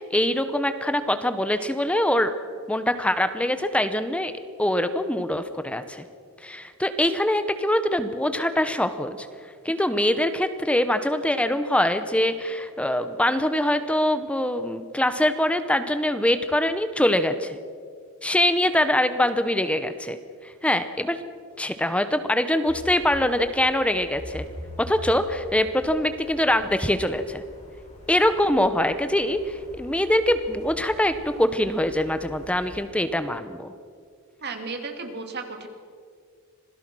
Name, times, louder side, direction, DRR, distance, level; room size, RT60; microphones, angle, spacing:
voice 1, 0.0-2.3 2.7-4.3 4.6-6.0 6.4-9.3 9.6-17.6 18.2-20.2 20.4-21.2 21.6-24.4 24.8-27.4 28.1-33.7, left 1 dB, 5° left, 10 dB, 0.8 m, -23 dB
sound 1, 22.7-32.8, left 1 dB, 30° left, 4.5 m, -44 dB
voice 2, 34.4-35.7, right 4 dB, 50° right, 5 dB, 2.5 m, -34 dB
26.5 x 17.5 x 6.1 m, 2.1 s
head